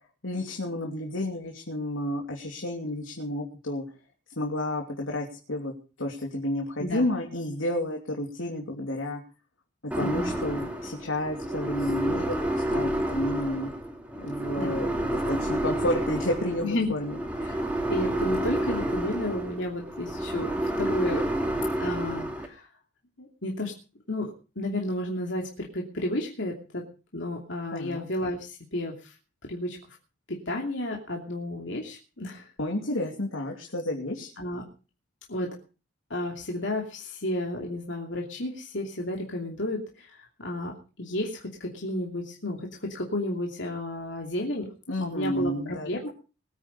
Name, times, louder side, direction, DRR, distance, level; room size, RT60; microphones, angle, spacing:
voice 1, 0.2-3.8 4.4-5.7 6.0-9.2 9.8-13.7 14.2-14.9 15.3-17.1 27.7-28.1 32.6-34.3 44.9-46.1, left 1 dB, 85° left, 1 dB, 3.0 m, -31 dB
sound 1, 9.9-22.5, right 1 dB, 5° right, 2.5 m, -30 dB
voice 2, 10.0-10.3 14.6-14.8 16.6-16.9 17.4-17.6 17.9-20.5 20.8-21.3 21.8-22.7 23.2-23.7 24.1-26.8 27.1-29.1 29.5-30.0 30.3-32.5 34.4-34.6 35.3-35.5 36.1-44.7 45.0-46.1, left 1 dB, 65° left, 0 dB, 2.8 m, -32 dB
21.5 x 9.3 x 5.3 m, 0.36 s
head